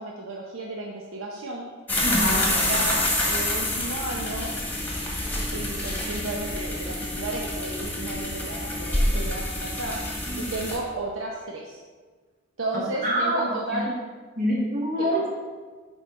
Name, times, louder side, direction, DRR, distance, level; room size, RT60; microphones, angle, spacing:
voice 1, 0.0-1.7 2.5-4.5 5.5-10.0 10.4-11.8 12.6-13.9 15.0-15.1, right 2 dB, 70° right, -1 dB, 0.9 m, -33 dB
sound 1, 1.9-10.8, left 1 dB, 10° left, 1.6 m, -27 dB
voice 2, 2.0-2.5 10.3-10.5 13.0-13.8 14.4-15.3, equal, 45° right, -4 dB, 2.2 m, -25 dB
8.0 x 4.6 x 5.6 m, 1.4 s
head